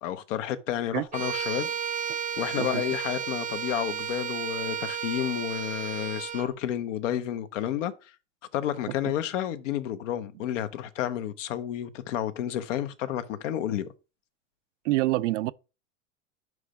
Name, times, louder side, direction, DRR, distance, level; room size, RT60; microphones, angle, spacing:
voice 1, 0.0-1.7 2.4-7.9 8.5-13.9, left 11 dB, 75° left, 0.9 m, -31 dB
Bowed string instrument, 1.1-6.5, right 8 dB, 20° right, 0.5 m, -33 dB
voice 2, 14.8-15.5, right 17 dB, 75° right, 0.5 m, -26 dB
5.3 x 4.8 x 4.9 m
hypercardioid pair, 110°, 37 cm